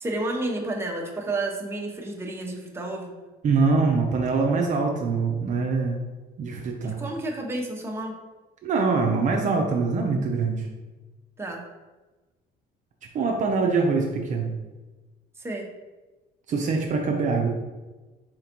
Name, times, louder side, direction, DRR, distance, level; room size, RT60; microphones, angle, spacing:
voice 1, 0.0-3.1 6.8-8.1 11.4-11.6 15.4-15.7, right 2 dB, 15° right, 0 dB, 0.7 m, -31 dB
voice 2, 3.4-6.1 6.4-7.0 8.6-10.7 13.1-14.5 16.5-17.5, right 4 dB, 50° right, 1 dB, 0.5 m, -24 dB
4.3 x 3.7 x 2.9 m, 1.2 s
cardioid pair, 110°, 17 cm